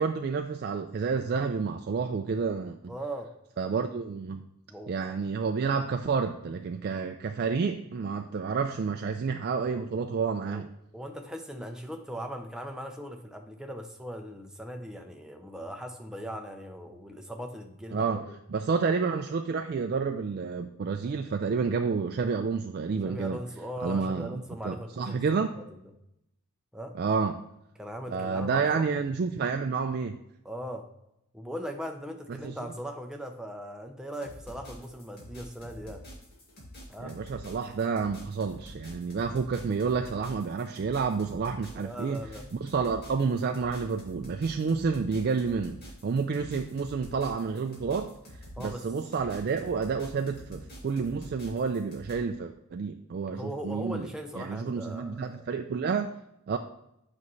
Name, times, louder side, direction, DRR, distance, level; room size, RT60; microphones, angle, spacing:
voice 1, 0.0-2.9 3.6-4.4 4.9-10.7 17.9-18.2 18.5-23.4 23.8-25.5 26.9-27.4 28.1-30.2 32.3-32.6 37.0-42.2 42.5-54.1 54.4-56.1 56.5-56.6, right 5 dB, 45° right, 5 dB, 0.3 m, -30 dB
voice 2, 2.9-3.3 4.7-4.9 10.4-10.6 10.9-18.3 23.0-25.6 26.7-26.9 27.8-28.9 30.4-30.9 31.3-36.0 36.9-37.2 41.7-42.4 48.6-48.8 53.3-55.4, equal, 5° right, 3 dB, 0.6 m, -39 dB
sound 1, 34.1-52.1, equal, 45° left, 2.3 m, -47 dB
8.4 x 5.3 x 3.1 m, 0.84 s
head